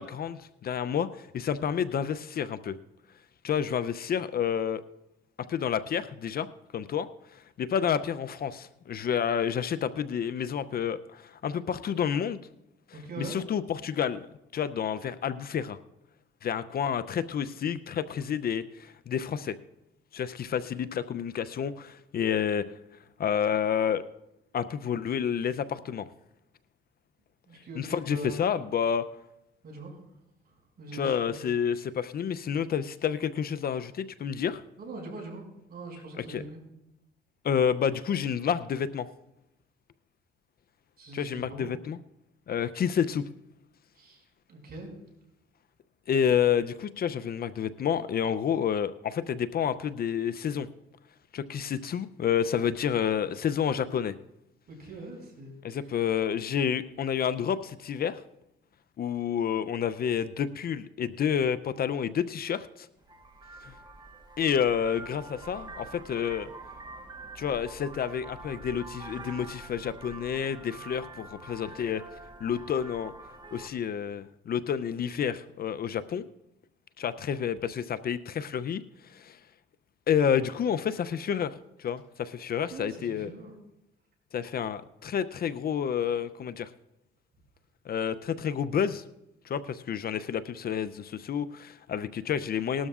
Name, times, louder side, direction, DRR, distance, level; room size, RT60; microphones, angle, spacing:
voice 1, 0.0-2.8 3.4-4.8 5.5-6.5 6.7-7.1 7.3-12.4 13.2-14.3 14.5-15.8 16.4-19.6 20.1-22.7 23.2-24.0 24.5-26.1 27.8-29.0 30.9-34.6 36.3-36.4 37.4-39.1 41.1-42.0 42.5-43.2 46.1-50.7 51.3-54.2 55.6-58.2 59.0-62.9 63.6-63.7 64.4-66.5 67.4-72.0 72.4-73.1 73.5-76.2 77.0-78.8 79.1-79.4 80.1-83.3 84.3-86.7 87.9-89.0 89.5-92.9, left 8 dB, 50° left, 13 dB, 0.5 m, -29 dB
voice 2, 12.9-13.4 27.5-28.4 29.6-30.0 30.4-31.5 34.8-36.6 41.0-41.7 43.9-44.9 54.7-55.9 82.6-83.6, right 2 dB, 50° right, 0 dB, 5.8 m, -42 dB
Vehicle horn car horn honking, 63.0-73.7, right 3 dB, 20° right, 1.2 m, -46 dB
19.5 x 12.5 x 2.4 m, 0.89 s
cardioid pair, 90°, 20 cm